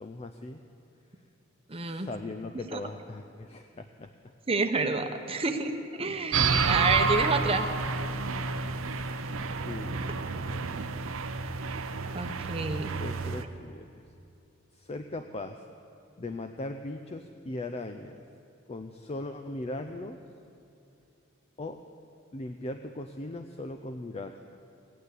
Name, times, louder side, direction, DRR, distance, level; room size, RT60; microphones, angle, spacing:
voice 1, 0.0-0.6 1.7-4.3 6.0-6.2 8.8-9.3 9.6-10.7 13.0-14.0 14.7-15.6 16.2-18.2 18.7-20.2 21.6-21.8 22.3-24.3, left 2 dB, 30° left, 7 dB, 0.5 m, -39 dB
voice 2, 1.7-2.1 2.7-2.8 4.5-7.7 12.1-12.9, right 3 dB, 30° right, 6 dB, 0.9 m, -29 dB
sound 1, 6.3-13.4, right 4 dB, 85° right, 0.7 m, -30 dB
16.5 x 9.3 x 8.3 m, 2.7 s
head